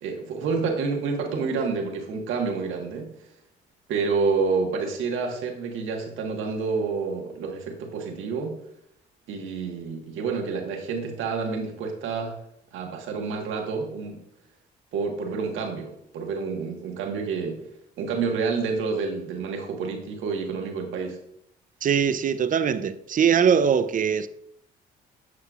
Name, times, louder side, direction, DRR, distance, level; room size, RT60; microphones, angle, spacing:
voice 1, 0.0-3.1 3.9-8.6 9.3-12.4 12.7-14.2 14.9-17.6 18.0-21.2, right 4 dB, 75° right, 1.4 m, -28 dB
voice 2, 21.8-24.3, right 7 dB, 40° right, 0.6 m, -21 dB
8.2 x 6.3 x 2.4 m
supercardioid pair, 60°, 21 cm